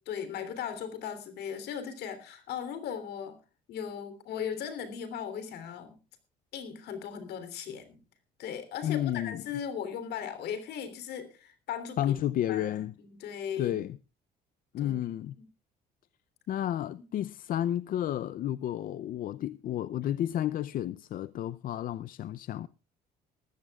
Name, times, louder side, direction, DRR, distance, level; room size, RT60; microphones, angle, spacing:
voice 1, 0.1-3.4 3.7-6.0 6.5-8.0 8.4-12.1 12.5-13.8 14.8-14.9, left 8 dB, 75° left, 3.3 m, -38 dB
voice 2, 8.8-9.4 12.0-12.9 13.6-14.0 14.7-15.3 16.5-22.7, left 11 dB, 55° left, 0.5 m, -31 dB
20.5 x 14.5 x 2.4 m
cardioid pair, 110°, 17 cm